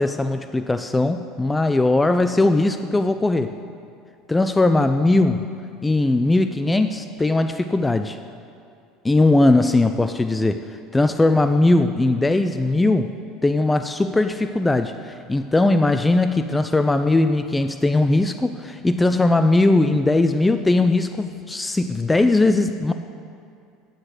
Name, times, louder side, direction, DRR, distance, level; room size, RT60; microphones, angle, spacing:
voice 1, 0.0-3.6 4.3-5.6 5.8-8.2 9.0-10.6 10.9-13.1 13.4-22.9, left 2 dB, 10° left, 9 dB, 0.3 m, -19 dB
9.5 x 6.4 x 6.4 m, 2.5 s
supercardioid pair, 115°, 0 cm